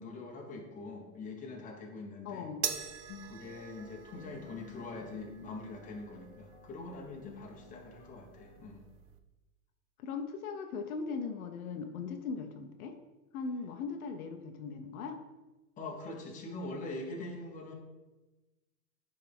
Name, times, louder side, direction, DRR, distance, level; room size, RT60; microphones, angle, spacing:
voice 1, 0.0-2.5 3.2-8.9 15.8-17.7, left 2 dB, 15° left, 0 dB, 1.2 m, -43 dB
voice 2, 2.2-2.7 4.1-5.1 10.0-13.0 13.3-15.2, left 5 dB, 70° left, 6 dB, 1.0 m, -40 dB
sound 1, 2.6-8.7, left 5 dB, 40° left, 1.1 m, -54 dB
sound 2, 2.6-9.2, right 9 dB, 35° right, 0.5 m, -44 dB
10.0 x 3.7 x 3.6 m, 1.1 s
supercardioid pair, 145°, 44 cm